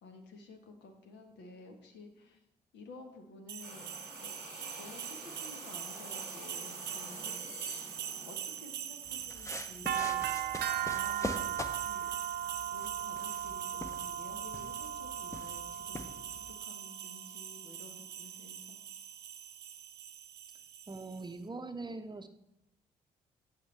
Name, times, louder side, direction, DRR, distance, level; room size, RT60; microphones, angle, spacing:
voice 1, 0.0-2.4 2.7-3.9 4.2-4.3 4.8-7.8 8.2-10.4 10.8-12.1 12.7-18.8, left 2 dB, 70° left, 4 dB, 1.3 m, -52 dB
sound 1, 3.5-21.2, right 10 dB, 65° right, 0.7 m, -39 dB
sound 2, 3.6-9.4, equal, 90° left, 3.0 m, -48 dB
sound 3, 9.1-16.5, left 1 dB, 15° left, 0.8 m, -45 dB
voice 2, 20.9-22.3, right 3 dB, 25° right, 9 dB, 0.7 m, -42 dB
9.5 x 5.6 x 3.3 m, 0.81 s
hypercardioid pair, 40°, 19 cm